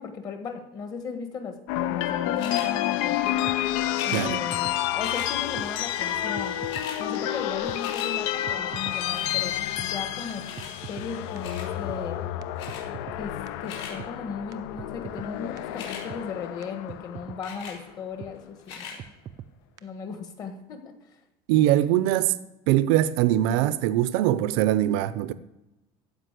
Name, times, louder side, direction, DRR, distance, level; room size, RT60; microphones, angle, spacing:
voice 1, 0.0-1.6 1.8-3.4 4.0-6.6 7.0-10.4 10.9-12.2 13.2-19.0 19.8-20.9, left 5 dB, 30° left, 1.5 m, -37 dB
sound 1, 1.7-17.9, left 12 dB, 75° left, 0.7 m, -30 dB
sound 2, 2.4-2.7 3.9-4.3 5.0-5.3 6.2-6.3 6.5-7.0 7.4-8.1 9.1-9.4 10.5-10.7 11.4-11.7 12.6-12.8 13.4-13.9 15.6-16.0 17.4-17.8 18.6-19.0 19.6-19.7, left 6 dB, 45° left, 4.1 m, -39 dB
sound 3, 3.5-3.6 4.0-4.1 4.3-4.8 5.0-5.1 5.6-5.7 6.1-6.2 6.4-6.9 7.1-7.2 7.7-7.8 8.2-8.3 8.5-9.0 9.3-9.4 9.8-9.9 10.3-11.1 11.4-11.5 11.9-12.0 12.4-12.5 12.7-13.2 13.5-13.6 14.0-14.1 14.5-14.6 14.8-15.3 15.6-15.7 16.1-16.2 16.6-16.7 16.9-17.4 17.7-17.8 18.2-18.3 18.7-18.8 19.0-19.5 19.8-19.9, right 10 dB, 30° right, 0.4 m, -41 dB
voice 2, 4.1-4.4 21.5-22.4 22.7-25.3, right 13 dB, 75° right, 0.6 m, -22 dB
15.0 x 5.3 x 8.2 m
cardioid pair, 180°, 13 cm